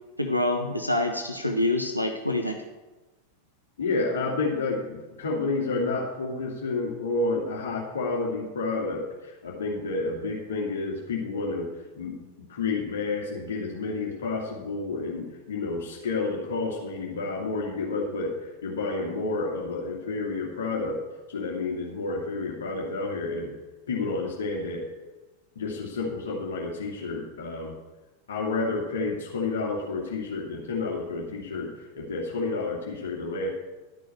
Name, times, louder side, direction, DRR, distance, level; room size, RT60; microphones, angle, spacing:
voice 1, 0.2-2.6, left 1 dB, 90° left, 3 dB, 1.0 m, -26 dB
voice 2, 3.8-11.7 11.9-12.2 12.5-21.0 21.3-23.5 23.9-24.9 25.6-27.7 28.3-33.5, left 3 dB, 65° left, -2 dB, 2.5 m, -30 dB
12.0 x 6.2 x 8.3 m, 1.1 s
figure-of-eight pair, 90°, 0 cm